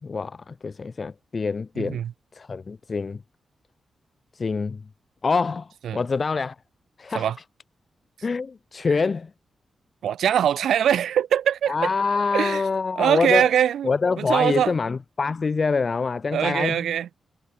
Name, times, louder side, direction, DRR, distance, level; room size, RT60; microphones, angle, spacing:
voice 1, 0.0-2.0 2.3-3.2 4.3-4.8 5.2-6.6 7.0-7.3 8.2-9.3 11.7-13.5 13.8-16.8, left 4 dB, 40° left, 4.2 m, -25 dB
voice 2, 1.8-2.1 5.8-6.0 7.1-7.4 8.9-9.0 10.0-11.7 12.3-12.6 12.9-13.9 14.2-14.7 16.3-17.1, right 9 dB, 90° right, 3.4 m, -22 dB
cardioid pair, 110°, 0 cm